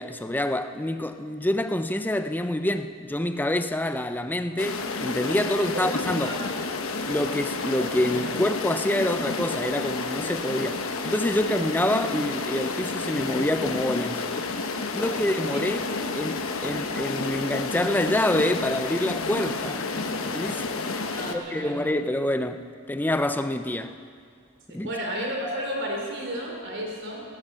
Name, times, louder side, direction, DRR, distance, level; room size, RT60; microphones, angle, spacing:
voice 1, 0.0-6.4 7.1-14.2 14.9-15.9 16.1-19.8 20.3-20.7 21.2-24.0 24.7-24.9, left 1 dB, 10° left, 0.5 m, -27 dB
sound 1, 4.6-21.3, left 3 dB, 80° left, 1.1 m, -30 dB
voice 2, 5.6-5.9 6.2-6.4 15.0-15.1 15.5-16.0 16.6-16.7 21.1-21.9 24.8-27.2, equal, 60° right, 3.5 m, -33 dB
17.0 x 12.0 x 6.8 m
head